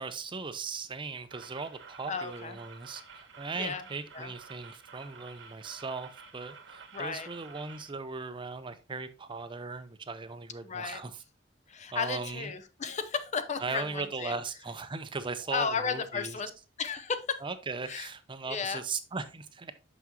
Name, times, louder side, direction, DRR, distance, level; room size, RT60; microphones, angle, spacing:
voice 1, 0.0-11.1 11.9-12.5 13.6-16.4 17.4-19.7, right 4 dB, 25° right, 11 dB, 0.5 m, -38 dB
sound 1, 1.3-7.9, right 5 dB, 80° right, 1.1 m, -51 dB
voice 2, 2.1-2.6 3.6-3.8 4.1-4.3 6.9-7.3 10.6-11.0 11.7-14.3 15.5-16.5 16.8-17.4 17.9-18.1 18.5-18.8, left 5 dB, 40° left, 10 dB, 0.6 m, -34 dB
6.0 x 5.8 x 2.9 m, 0.31 s
head